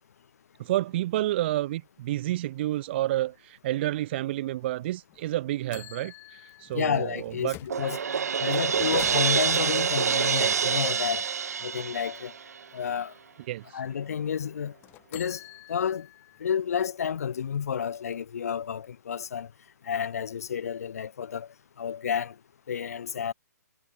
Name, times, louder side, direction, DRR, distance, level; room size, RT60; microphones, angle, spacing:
voice 1, 0.6-7.6 13.5-13.8, right 15 dB, 40° right, 0.6 m, -30 dB
sound 1, 5.1-5.2 5.7-7.9 8.6-9.7 14.8-16.4 16.8-16.9 17.3-18.4, left 17 dB, 25° left, 3.1 m, -47 dB
voice 2, 6.7-8.0 8.4-11.2 11.6-12.3 12.7-13.1 13.7-14.7 15.1-15.4 15.7-16.1 16.4-19.5 19.8-21.5 21.8-22.3 22.7-23.3, left 8 dB, 60° left, 1.1 m, -30 dB
Crash cymbal, 7.7-12.6, right 7 dB, 60° right, 1.1 m, -26 dB
figure-of-eight pair, 125°, 9 cm